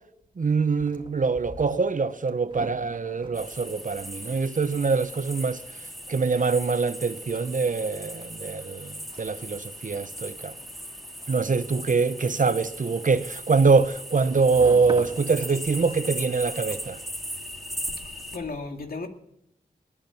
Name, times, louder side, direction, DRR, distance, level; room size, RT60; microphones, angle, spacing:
voice 1, 0.4-5.6 6.1-10.5 11.3-17.0, right 4 dB, 55° right, 1.0 m, -24 dB
sound 1, 0.6-17.2, right 2 dB, 30° right, 1.9 m, -46 dB
sound 2, 3.3-18.4, equal, ahead, 3.4 m, -38 dB
voice 2, 18.0-19.1, left 3 dB, 65° left, 2.4 m, -35 dB
19.5 x 8.8 x 7.0 m
cardioid pair, 50°, 16 cm